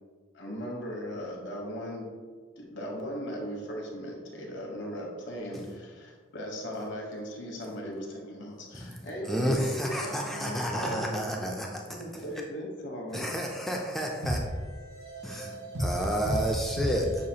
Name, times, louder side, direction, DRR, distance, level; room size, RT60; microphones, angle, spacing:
voice 1, 0.3-2.1 2.6-11.1 11.9-13.3, equal, 70° left, 0.9 m, -38 dB
voice 2, 9.3-11.8 13.1-14.4 15.2-17.1, equal, ahead, 0.3 m, -30 dB
voice 3, 14.2-17.3, equal, 80° right, 1.3 m, -33 dB
6.2 x 2.4 x 2.8 m
head